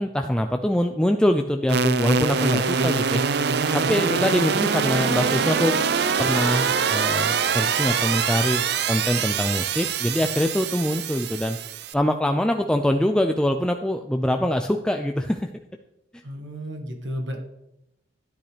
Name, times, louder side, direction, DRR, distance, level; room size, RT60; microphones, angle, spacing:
voice 1, 0.0-3.2 3.7-5.8 6.2-11.6 11.9-15.5, left 1 dB, 5° left, 4 dB, 0.4 m, -24 dB
sound 1, 1.7-11.9, right 6 dB, 65° right, 0.5 m, -24 dB
voice 2, 16.2-17.4, equal, 90° right, 4 dB, 1.6 m, -32 dB
12.0 x 10.5 x 3.3 m, 0.87 s
head